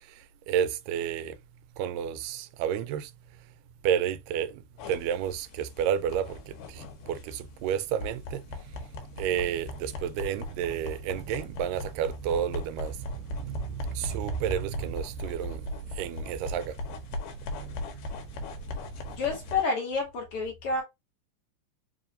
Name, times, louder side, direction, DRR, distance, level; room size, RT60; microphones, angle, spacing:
voice 1, 0.5-1.3 1.8-3.1 3.8-4.5 4.9-6.4 6.8-8.4 9.2-13.0 13.3-15.6 16.0-16.7 17.6-17.8, right 9 dB, 90° right, 2.2 m, -30 dB
sound 1, 4.8-19.6, left 2 dB, 80° left, 2.3 m, -39 dB
voice 2, 19.1-20.8, left 4 dB, 60° left, 1.6 m, -29 dB
5.0 x 2.8 x 2.5 m
omnidirectional pair, 3.7 m